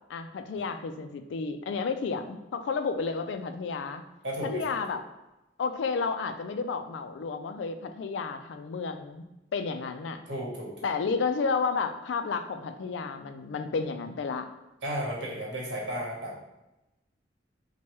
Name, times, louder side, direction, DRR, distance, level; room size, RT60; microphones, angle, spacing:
voice 1, 0.1-4.0 4.4-5.0 5.6-10.2 10.8-14.5, left 4 dB, 80° left, 8 dB, 0.3 m, -31 dB
voice 2, 4.2-4.7 10.3-10.9 14.8-16.4, equal, 85° right, -4 dB, 1.2 m, -34 dB
4.5 x 2.2 x 3.0 m, 0.97 s
head